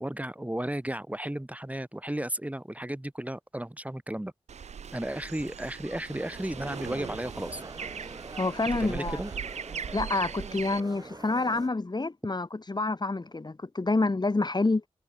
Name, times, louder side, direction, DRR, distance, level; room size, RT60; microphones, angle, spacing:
voice 1, 0.0-4.3 4.9-7.6 8.8-9.3, right 1 dB, 15° right, 2.0 m, -34 dB
sound 1, 4.5-10.8, right 7 dB, 85° right, 0.7 m, -39 dB
sound 2, 6.1-11.7, right 2 dB, 35° right, 2.0 m, -45 dB
voice 2, 8.4-9.2 9.9-14.9, left 3 dB, 40° left, 1.9 m, -28 dB
cardioid pair, 45°, 11 cm